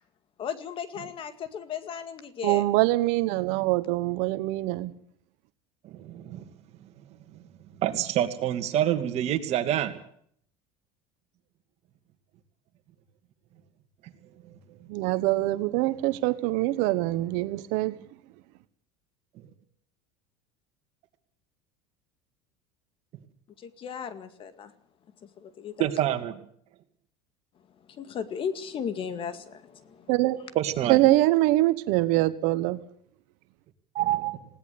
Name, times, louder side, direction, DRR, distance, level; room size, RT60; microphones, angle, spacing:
voice 1, 0.4-2.6 23.6-24.7 25.2-25.9 27.9-30.2, left 7 dB, 40° left, 11 dB, 2.1 m, -36 dB
voice 2, 2.4-4.9 14.9-17.9 30.1-30.4 30.9-32.8, right 17 dB, 70° right, 13 dB, 1.2 m, -24 dB
voice 3, 3.3-3.7 5.9-6.4 7.8-9.9 25.8-26.4 30.5-31.0 33.9-34.4, right 12 dB, 50° right, 7 dB, 2.6 m, -27 dB
20.0 x 17.5 x 8.5 m, 0.65 s
supercardioid pair, 120°, 14 cm